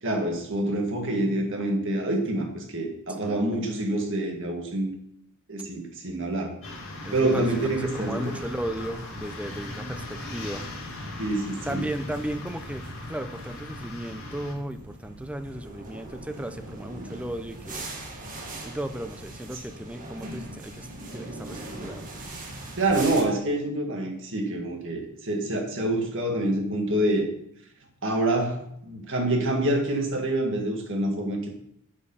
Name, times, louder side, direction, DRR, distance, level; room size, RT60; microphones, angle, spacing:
voice 1, 0.0-4.9 5.5-6.6 7.1-8.2 11.2-11.8 22.8-27.3 28.0-31.5, right 1 dB, 60° right, 2 dB, 1.9 m, -26 dB
voice 2, 3.2-3.6 7.0-10.6 11.7-17.9 18.6-22.1, right 1 dB, 5° right, 9 dB, 0.5 m, -35 dB
sound 1, 6.6-14.5, left 2 dB, 65° left, 3.2 m, -39 dB
sound 2, 7.5-23.2, right 1 dB, 40° right, 1.7 m, -42 dB
8.3 x 5.4 x 5.7 m, 0.74 s
head